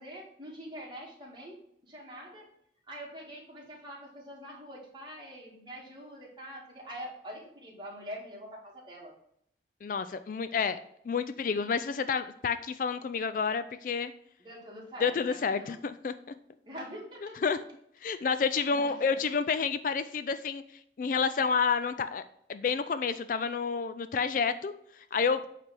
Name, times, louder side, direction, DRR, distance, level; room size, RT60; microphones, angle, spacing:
voice 1, 0.0-1.6 1.8-2.5 2.9-9.1 14.4-15.8 16.6-17.4 18.1-18.9, equal, 25° right, -2 dB, 1.9 m, -45 dB
voice 2, 9.8-10.8 11.1-14.1 15.0-16.1 17.2-17.6 18.0-20.6 21.0-22.2 22.5-25.5, left 5 dB, 45° left, 11 dB, 0.3 m, -29 dB
8.3 x 3.4 x 5.9 m, 0.73 s
head